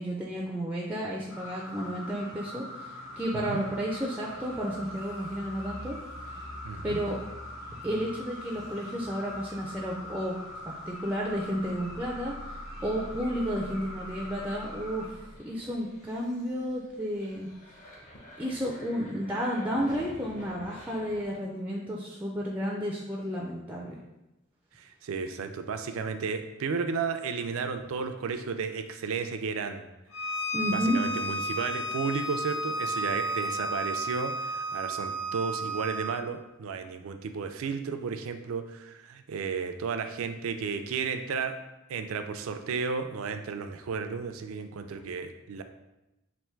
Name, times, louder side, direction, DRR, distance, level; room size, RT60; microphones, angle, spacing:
voice 1, 0.0-6.0 6.8-7.2 7.8-10.4 10.7-12.6 12.8-17.5 18.4-24.0 30.5-31.0, equal, 10° right, -3 dB, 0.3 m, -32 dB
sound 1, 1.3-15.1, left 1 dB, 70° left, 0.9 m, -43 dB
sound 2, 2.9-21.2, equal, 40° left, 0.7 m, -48 dB
voice 2, 6.6-7.0 24.8-29.8 30.7-41.6 41.9-45.6, right 5 dB, 80° right, 7 dB, 0.4 m, -33 dB
Bowed string instrument, 30.1-36.2, right 1 dB, 85° left, 0.6 m, -32 dB
3.4 x 2.5 x 4.4 m, 0.96 s
head